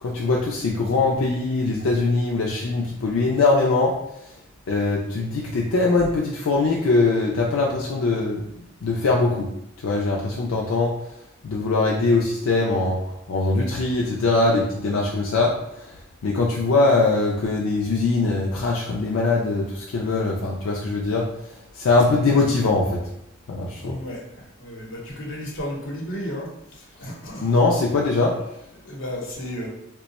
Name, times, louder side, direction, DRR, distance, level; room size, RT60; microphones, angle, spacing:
voice 1, 0.0-3.9 4.7-8.4 8.8-9.5 9.8-10.9 11.4-13.0 13.3-15.6 15.8-15.9 16.2-21.3 21.7-23.0 23.5-24.0 27.4-28.4, left 3 dB, 90° left, -2 dB, 0.4 m, -21 dB
voice 2, 23.7-27.9 28.5-29.7, equal, 65° left, -3 dB, 1.0 m, -34 dB
2.9 x 2.2 x 4.0 m, 0.81 s
head